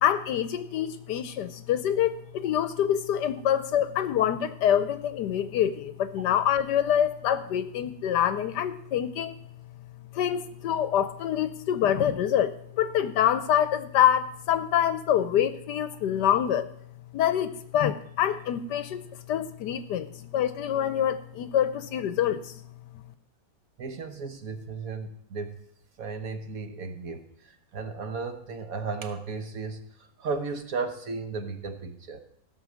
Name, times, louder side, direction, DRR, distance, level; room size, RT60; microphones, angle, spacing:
voice 1, 0.0-9.3 10.1-16.7 17.1-19.0 19.3-22.6, left 10 dB, 70° left, 12 dB, 1.2 m, -26 dB
voice 2, 23.8-25.6 26.0-32.2, right 4 dB, 55° right, 7 dB, 1.2 m, -35 dB
15.5 x 6.2 x 6.2 m, 0.69 s
omnidirectional pair, 2.0 m